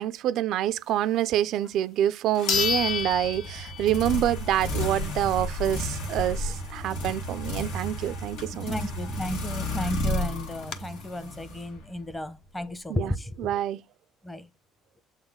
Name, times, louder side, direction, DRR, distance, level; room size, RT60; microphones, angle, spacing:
voice 1, 0.0-8.8 12.9-13.8, right 12 dB, 65° right, 0.3 m, -27 dB
sound 1, 1.6-1.7 2.5-4.2 4.6-4.7 9.3-9.4 9.6-9.7 10.3-10.8, left 7 dB, 65° left, 0.9 m, -29 dB
sound 2, 2.3-12.1, left 1 dB, 85° left, 2.0 m, -33 dB
voice 2, 8.6-13.6 14.2-14.5, equal, 15° left, 0.8 m, -33 dB
7.5 x 4.0 x 3.6 m
cardioid pair, 125°, 0 cm